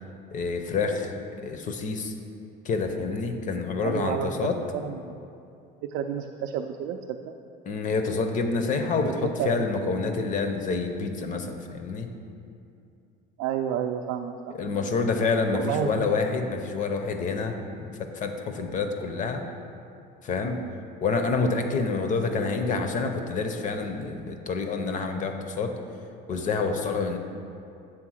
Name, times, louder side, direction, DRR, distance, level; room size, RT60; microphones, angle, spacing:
voice 1, 0.3-2.1 2.6-4.6 7.7-12.1 14.5-19.4 20.2-20.6 21.0-25.7 26.3-27.2, left 4 dB, 40° left, 6 dB, 0.7 m, -28 dB
voice 2, 3.8-5.3 5.9-7.3 9.0-9.9 13.4-14.5 15.5-16.1, right 8 dB, 85° right, 3 dB, 0.4 m, -31 dB
7.7 x 3.6 x 6.2 m, 2.6 s
cardioid pair, 125°, 19 cm